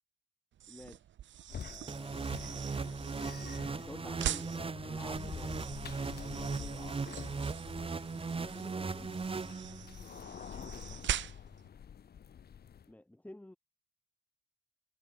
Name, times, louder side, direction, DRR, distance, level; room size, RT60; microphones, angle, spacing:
sound 1, 0.5-11.7, right 11 dB, 70° right, 2.3 m, -43 dB
voice 1, 0.7-1.0 1.5-3.1 3.7-5.8 8.4-9.1 12.9-13.6, left 1 dB, 5° left, 1.9 m, -51 dB
sound 2, 1.5-12.9, left 8 dB, 50° left, 2.7 m, -48 dB
sound 3, 1.9-10.0, right 4 dB, 25° right, 1.9 m, -38 dB
voice 2, 6.1-7.2 10.3-11.3, left 4 dB, 30° left, 4.1 m, -54 dB
cardioid pair, 90°, 20 cm